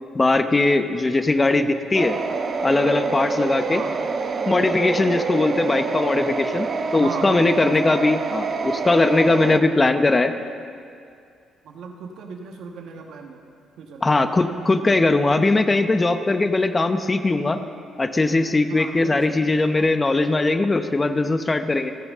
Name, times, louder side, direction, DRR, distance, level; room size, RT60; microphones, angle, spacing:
voice 1, 0.1-2.2 2.6-3.8 4.5-6.7 6.9-10.3 14.0-17.6 18.0-21.9, left 2 dB, 25° left, 8 dB, 0.8 m, -20 dB
sound 1, 1.9-9.6, right 4 dB, 45° right, 0.9 m, -26 dB
voice 2, 3.7-4.1 7.0-8.2 10.0-10.4 11.6-13.4 13.8-14.1 18.7-20.0, right 5 dB, 75° right, 3 dB, 1.4 m, -38 dB
28.0 x 9.4 x 3.7 m, 2.3 s
cardioid pair, 90°, 0 cm